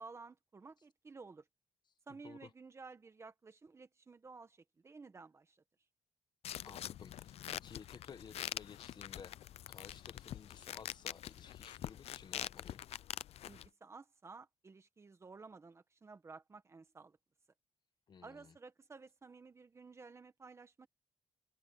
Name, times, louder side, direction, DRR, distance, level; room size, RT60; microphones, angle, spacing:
voice 1, 0.0-1.4 2.1-5.6 13.4-17.2 18.2-20.9, right 4 dB, 25° right, 1.6 m, -54 dB
voice 2, 2.1-2.5 6.6-9.4 9.7-12.9 18.1-18.5, left 6 dB, 40° left, 1.1 m, -55 dB
sound 1, 6.4-13.7, left 12 dB, 60° left, 0.4 m, -45 dB
cardioid pair, 160°, 12 cm